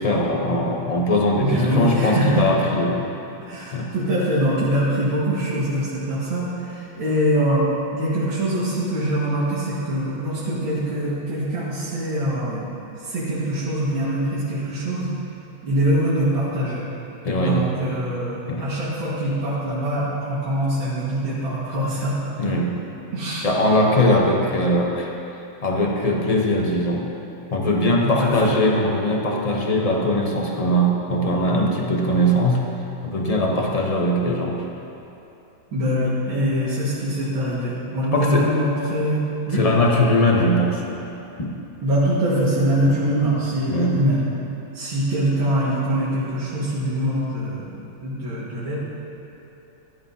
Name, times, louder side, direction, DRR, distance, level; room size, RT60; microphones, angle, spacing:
voice 1, 0.0-3.0 3.7-3.9 17.2-17.7 18.5-18.7 22.4-22.8 23.4-25.1 25.6-27.1 27.5-32.7 33.0-34.6 38.1-38.5 39.5-40.8 41.4-41.6 42.8-42.9 43.7-44.0, left 1 dB, 50° left, -1 dB, 0.4 m, -20 dB
voice 2, 1.4-2.7 3.4-12.7 13.0-15.1 15.6-16.8 17.4-22.2 22.4-22.5 23.1-23.5 28.0-28.5 35.7-39.7 41.8-44.2 44.7-48.8, right 1 dB, 85° right, -10 dB, 2.6 m, -23 dB
15.0 x 11.5 x 2.8 m, 2.9 s
omnidirectional pair, 2.1 m